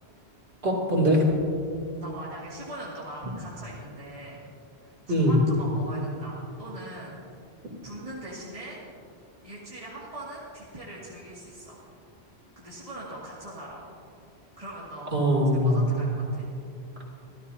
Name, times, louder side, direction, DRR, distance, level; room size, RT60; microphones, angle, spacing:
voice 1, 0.6-1.3 5.1-5.4 15.1-15.9, equal, 70° right, -2 dB, 3.3 m, -22 dB
voice 2, 2.0-4.4 4.8-7.2 7.8-8.8 9.4-11.8 12.6-13.8 14.6-15.1 15.5-16.5, right 1 dB, 35° right, -8 dB, 2.6 m, -41 dB
27.0 x 13.5 x 2.8 m, 2.6 s
omnidirectional pair, 1.1 m